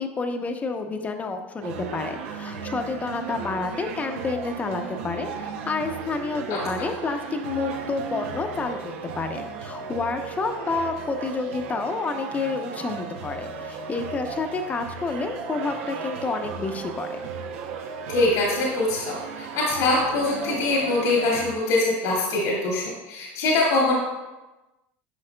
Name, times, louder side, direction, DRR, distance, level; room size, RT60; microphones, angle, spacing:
voice 1, 0.0-17.2, left 4 dB, 20° left, 6 dB, 0.7 m, -29 dB
sound 1, 1.6-21.6, right 6 dB, 85° right, 0.6 m, -35 dB
voice 2, 18.1-24.0, left 2 dB, 75° left, -4 dB, 1.8 m, -23 dB
11.0 x 4.8 x 2.2 m, 1.1 s
supercardioid pair, 115°, 7 cm